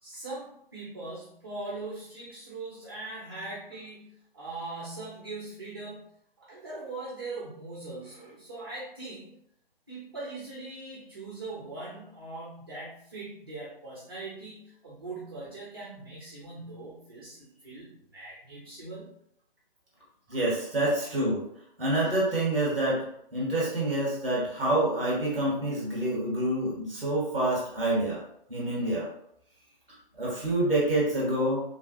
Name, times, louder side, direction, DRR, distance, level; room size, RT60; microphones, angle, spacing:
voice 1, 0.0-4.1 4.3-6.1 6.4-9.3 9.9-19.1 20.3-20.4, right 2 dB, 25° right, -6 dB, 0.4 m, -41 dB
voice 2, 20.3-21.4 21.8-23.1 23.3-28.2 28.5-29.1 30.1-31.6, right 1 dB, 5° right, -6 dB, 0.9 m, -27 dB
3.0 x 2.3 x 2.8 m, 0.72 s
figure-of-eight pair, 145°, 29 cm